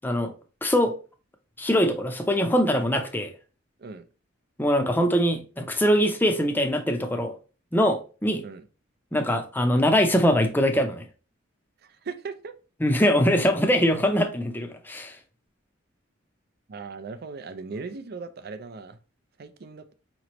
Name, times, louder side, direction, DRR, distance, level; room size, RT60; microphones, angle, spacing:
voice 1, 0.0-0.3 0.6-0.9 1.6-3.3 4.6-7.3 7.7-8.4 9.1-11.0 12.8-15.2, equal, 10° left, 0.6 m, -22 dB
voice 2, 12.0-12.5 16.7-19.0 19.4-19.9, right 4 dB, 55° right, 0.5 m, -38 dB
4.9 x 3.0 x 3.0 m
head